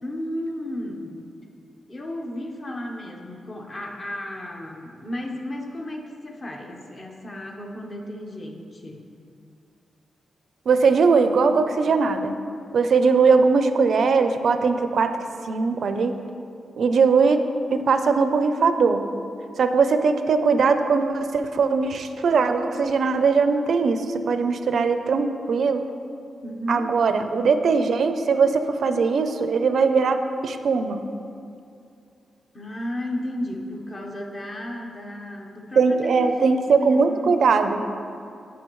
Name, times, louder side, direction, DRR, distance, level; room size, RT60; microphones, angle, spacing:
voice 1, 0.0-1.2 1.9-9.0 26.4-26.9 32.5-37.4, left 1 dB, 25° left, 1 dB, 0.9 m, -33 dB
voice 2, 10.7-12.4 12.7-15.1 15.5-16.2 16.8-19.0 19.6-25.8 26.7-31.1 35.8-37.8, right 4 dB, 60° right, 8 dB, 0.5 m, -20 dB
16.0 x 6.0 x 3.1 m, 2.5 s
wide cardioid pair, 170°, 0 cm